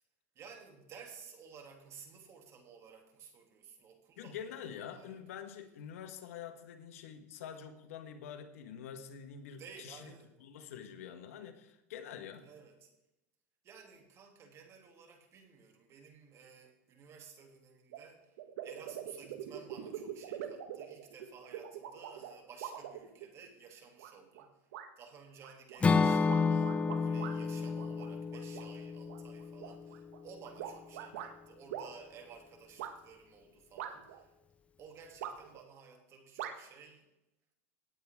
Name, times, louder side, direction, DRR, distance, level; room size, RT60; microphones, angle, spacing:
voice 1, 0.3-4.5 4.7-5.2 9.5-10.3 12.4-12.9 13.6-18.3 18.6-24.5 25.0-34.3 34.8-37.1, right 6 dB, 40° right, 3 dB, 2.7 m, -54 dB
voice 2, 4.2-10.1 10.4-12.5, left 8 dB, 85° left, 8 dB, 1.5 m, -46 dB
sound 1, 17.9-18.0 18.4-23.5 24.0-24.5 24.7-24.9 25.4-27.3 27.8-28.7 29.1-31.3 31.7-31.9 32.8-32.9 33.8-34.2 35.2-35.6 36.4-36.5, right 10 dB, 80° right, 1.5 m, -43 dB
Acoustic guitar / Strum, 25.8-29.9, left 4 dB, 15° left, 0.5 m, -30 dB
17.5 x 8.7 x 3.6 m, 0.90 s
supercardioid pair, 125°, 8 cm